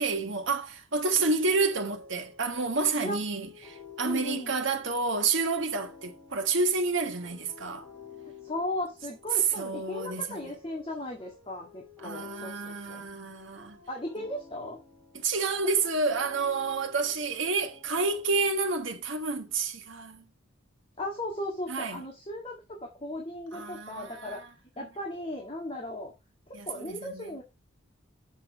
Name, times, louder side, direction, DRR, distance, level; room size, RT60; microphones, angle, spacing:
voice 1, 0.0-7.8 9.3-10.4 12.0-13.8 15.1-20.3 21.7-22.0 23.5-24.5 26.5-27.3, right 4 dB, 70° right, 1.4 m, -29 dB
sound 1, 1.5-18.7, left 6 dB, 5° left, 3.7 m, -51 dB
voice 2, 4.0-4.5 8.4-13.1 13.9-14.8 21.0-24.5 24.8-26.1 26.5-27.4, left 1 dB, 30° left, 1.9 m, -37 dB
7.6 x 5.8 x 4.7 m
head